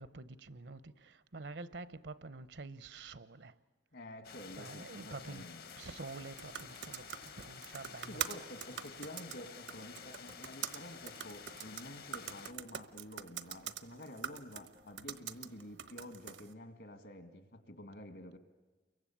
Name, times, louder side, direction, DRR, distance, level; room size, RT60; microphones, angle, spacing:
voice 1, 0.0-3.6 4.6-5.5 5.8-8.2, right 3 dB, 75° right, 0.8 m, -48 dB
voice 2, 3.9-5.7 8.1-18.4, left 1 dB, 70° left, 2.2 m, -50 dB
sound 1, 4.2-12.5, left 6 dB, 55° left, 1.0 m, -51 dB
sound 2, 6.0-16.5, right 8 dB, 90° right, 1.2 m, -45 dB
29.5 x 23.5 x 8.7 m
head